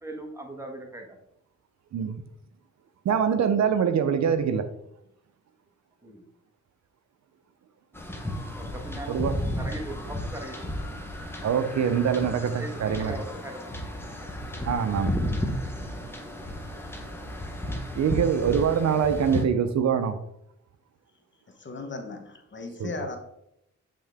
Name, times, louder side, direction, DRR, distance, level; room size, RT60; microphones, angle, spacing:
voice 1, 0.0-1.2 6.0-6.2 8.6-10.7 12.6-13.8, right 1 dB, 10° right, 1.2 m, -39 dB
voice 2, 1.9-2.2 3.1-4.7 9.1-9.4 11.4-13.2 14.7-15.1 18.0-20.2 22.8-22.9, right 7 dB, 65° right, 0.5 m, -24 dB
sound 1, 7.9-19.4, left 1 dB, 10° left, 0.9 m, -33 dB
voice 3, 21.5-23.2, left 3 dB, 40° left, 0.9 m, -37 dB
7.6 x 3.6 x 3.4 m
cardioid pair, 95°, 30 cm